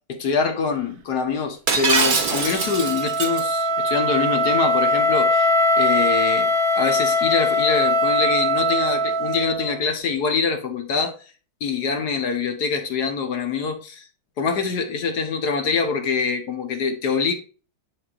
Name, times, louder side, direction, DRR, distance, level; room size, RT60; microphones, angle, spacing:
voice 1, 0.1-11.1 11.6-14.0 14.4-17.3, left 5 dB, 55° left, 1.5 m, -24 dB
Shatter, 1.7-3.4, right 4 dB, 50° right, 0.5 m, -22 dB
Wind instrument woodwind instrument, 1.8-9.8, left 1 dB, 75° right, 1.6 m, -21 dB
9.9 x 4.2 x 2.5 m
omnidirectional pair, 2.2 m